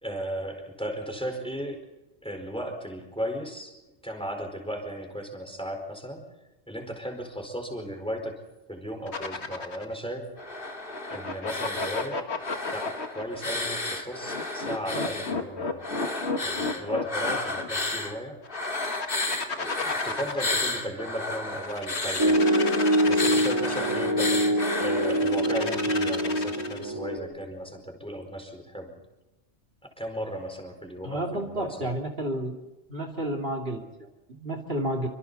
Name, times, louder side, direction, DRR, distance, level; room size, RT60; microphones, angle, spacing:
voice 1, 0.0-1.8 2.2-6.2 6.7-8.4 8.7-10.4 11.1-12.3 12.7-15.9 16.4-18.4 19.4-22.5 23.0-24.5 24.8-28.9 30.0-31.9, equal, 5° left, 3 dB, 4.5 m, -35 dB
sound 1, 9.1-9.9 10.9-13.4 14.3-17.7 18.4-20.8 21.6-24.1 25.0-26.9, left 4 dB, 70° left, 2.1 m, -33 dB
sound 2, 10.4-12.1 12.4-15.4 15.8-18.1 18.5-25.4, left 2 dB, 50° left, 2.7 m, -32 dB
Piano, 22.2-27.2, equal, 20° right, 3.4 m, -24 dB
voice 2, 31.0-32.6 32.9-35.1, right 1 dB, 60° right, 1 dB, 2.9 m, -31 dB
28.5 x 25.0 x 4.1 m, 1.0 s
omnidirectional pair, 1.2 m